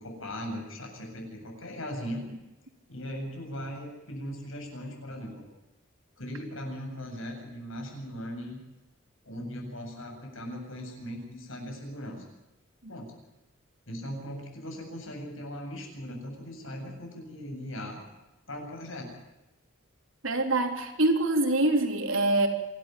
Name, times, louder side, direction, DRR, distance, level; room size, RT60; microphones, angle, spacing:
voice 1, 0.0-2.3 2.9-5.5 6.2-8.6 9.2-12.2 12.9-13.1 13.9-18.1 18.5-19.1, equal, 80° left, 2 dB, 7.8 m, -39 dB
voice 2, 20.2-22.5, right 2 dB, 80° right, 4 dB, 3.6 m, -24 dB
27.0 x 12.5 x 9.2 m, 0.99 s
head